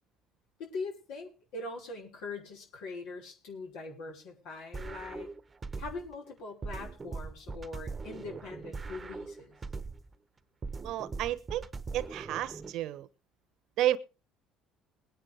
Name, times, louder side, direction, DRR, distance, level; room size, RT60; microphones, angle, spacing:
voice 1, 0.6-5.3 5.8-9.6, left 3 dB, 75° left, 5.4 m, -42 dB
sound 1, 4.7-6.2 6.6-10.2 10.6-12.7, right 4 dB, 30° right, 1.0 m, -41 dB
voice 2, 10.8-11.6 11.9-13.1 13.8-14.0, right 13 dB, 70° right, 1.0 m, -31 dB
21.5 x 9.4 x 3.5 m
supercardioid pair, 75°, 0 cm